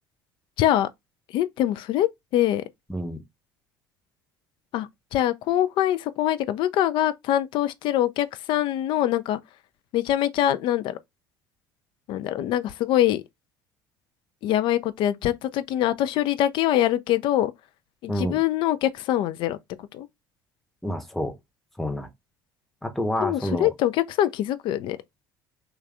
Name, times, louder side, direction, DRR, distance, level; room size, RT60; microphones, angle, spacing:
voice 1, 0.6-0.9 1.3-2.6 4.7-9.4 9.9-11.0 12.1-13.2 14.4-17.5 18.0-19.6 19.9-20.1 23.2-25.0, left 12 dB, 45° left, 0.3 m, -24 dB
voice 2, 2.9-3.2 18.1-18.4 20.8-21.4 21.8-22.1 22.8-23.7, equal, ahead, 0.7 m, -28 dB
3.2 x 2.3 x 3.4 m
figure-of-eight pair, 60°, 12 cm